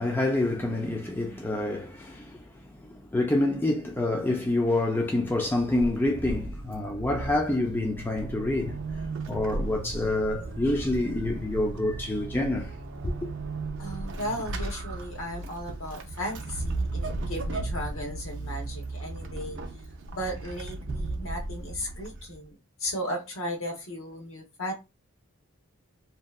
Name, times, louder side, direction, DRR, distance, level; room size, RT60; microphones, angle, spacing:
voice 1, 0.0-8.8 9.3-12.7 13.0-13.1, left 2 dB, 10° left, 0.3 m, -27 dB
Vehicle / Accelerating revving vroom / Squeak, 5.2-22.5, right 2 dB, 60° right, 0.4 m, -35 dB
voice 2, 13.8-19.6 20.1-24.7, equal, 65° left, 1.0 m, -36 dB
2.7 x 2.2 x 2.2 m
head